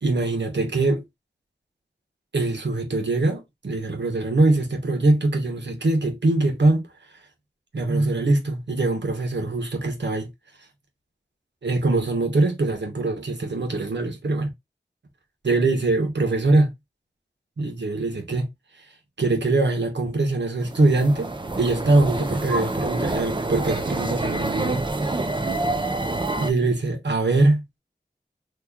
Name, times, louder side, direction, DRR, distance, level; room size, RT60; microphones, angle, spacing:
voice 1, 0.0-1.0 2.3-6.8 7.7-10.3 11.6-14.5 15.4-16.7 17.6-18.5 19.2-25.1 26.4-27.6, right 2 dB, 85° right, 0.9 m, -22 dB
sound 1, 20.6-26.5, right 2 dB, 25° right, 0.5 m, -27 dB
3.0 x 2.3 x 3.5 m
wide cardioid pair, 40°, 18 cm